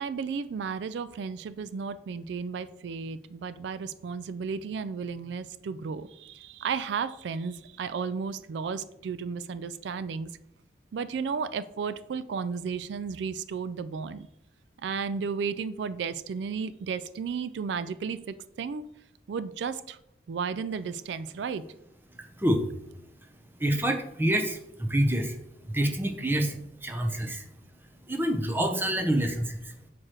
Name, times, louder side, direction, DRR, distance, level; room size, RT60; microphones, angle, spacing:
voice 1, 0.0-10.3 10.9-14.3 14.8-18.8 19.3-20.0 20.3-21.6, right 5 dB, 85° right, 14 dB, 0.3 m, -33 dB
voice 2, 23.6-25.4 25.7-27.5 28.1-29.7, right 1 dB, 10° right, 5 dB, 0.7 m, -27 dB
6.2 x 4.7 x 4.4 m, 0.80 s
head